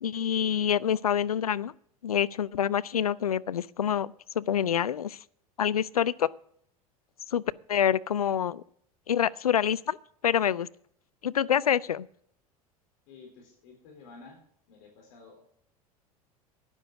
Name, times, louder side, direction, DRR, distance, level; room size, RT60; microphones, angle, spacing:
voice 1, 0.0-1.7 2.0-5.2 5.6-6.3 7.3-7.4 7.7-8.6 9.1-10.0 10.2-10.7 11.2-12.1, left 9 dB, 80° left, 19 dB, 0.4 m, -26 dB
voice 2, 13.1-14.4 14.7-15.4, left 4 dB, 60° left, 1 dB, 3.8 m, -51 dB
12.5 x 10.0 x 4.8 m, 0.65 s
figure-of-eight pair, 75°, 19 cm